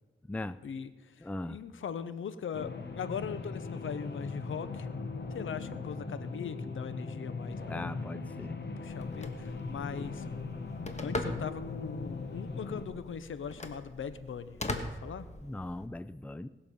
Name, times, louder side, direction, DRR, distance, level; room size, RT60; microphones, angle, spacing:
voice 1, 0.6-4.9 5.3-7.9 8.8-10.2 11.0-15.3, left 7 dB, 75° left, 13 dB, 0.8 m, -40 dB
voice 2, 1.2-1.6 7.7-8.6 15.4-16.5, left 2 dB, 5° left, 14 dB, 0.4 m, -39 dB
sound 1, 2.5-12.8, left 4 dB, 60° left, 1.5 m, -39 dB
Telephone, 8.9-15.9, left 1 dB, 35° left, 1.4 m, -41 dB
19.0 x 6.8 x 5.3 m, 1.2 s
cardioid pair, 65°, 20 cm